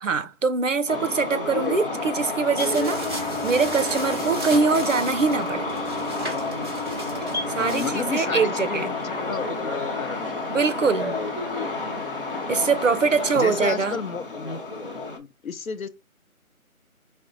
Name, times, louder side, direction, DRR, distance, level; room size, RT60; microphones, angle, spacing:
voice 1, 0.0-5.7 7.5-8.9 10.5-11.2 12.5-14.0, right 4 dB, 60° right, 0.7 m, -23 dB
sound 1, 0.9-15.2, left 3 dB, 40° left, 0.8 m, -30 dB
sound 2, 2.6-7.9, right 1 dB, 20° right, 1.5 m, -34 dB
voice 2, 7.6-10.4 13.4-14.6 15.2-15.9, left 5 dB, 70° left, 0.7 m, -32 dB
5.1 x 2.1 x 3.8 m
figure-of-eight pair, 170°, 43 cm